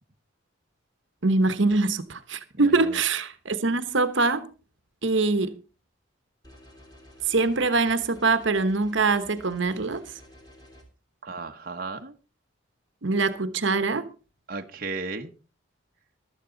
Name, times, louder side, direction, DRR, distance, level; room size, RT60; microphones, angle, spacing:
voice 1, 1.2-4.5 5.0-5.6 7.3-10.0 13.0-14.1, right 3 dB, 70° right, 1.1 m, -23 dB
voice 2, 2.5-3.0 11.2-12.1 14.5-15.3, right 3 dB, 45° right, 1.1 m, -35 dB
sound 1, 6.4-10.8, left 1 dB, 20° left, 3.5 m, -51 dB
15.0 x 12.5 x 3.9 m
head